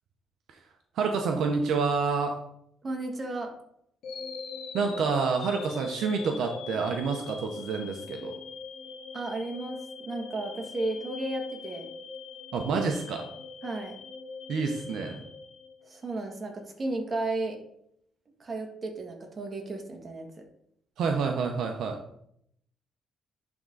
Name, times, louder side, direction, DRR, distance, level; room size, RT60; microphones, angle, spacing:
voice 1, 0.9-2.4 4.7-8.3 12.5-13.3 14.5-15.2 21.0-22.0, right 5 dB, 75° right, 4 dB, 0.8 m, -28 dB
voice 2, 2.8-3.5 9.1-11.9 13.6-13.9 15.8-17.6 18.4-20.4, right 2 dB, 35° right, 2 dB, 1.8 m, -34 dB
sound 1, 4.0-16.2, left 4 dB, 80° left, 1.1 m, -42 dB
10.5 x 3.7 x 4.0 m, 0.72 s
cardioid pair, 90°, 0 cm